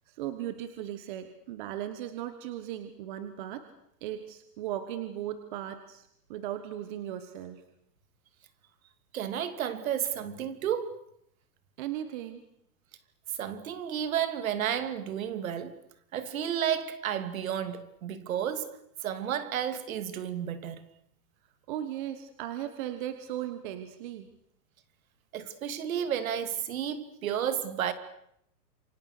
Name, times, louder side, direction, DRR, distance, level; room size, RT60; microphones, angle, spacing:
voice 1, 0.1-3.6 4.0-7.6 11.8-12.4 21.7-24.3, right 11 dB, 30° right, 1.4 m, -37 dB
voice 2, 9.1-11.0 13.4-15.8 16.1-20.8 25.3-27.9, right 9 dB, 55° right, 2.8 m, -32 dB
28.5 x 24.5 x 6.7 m
hypercardioid pair, 170°, 49 cm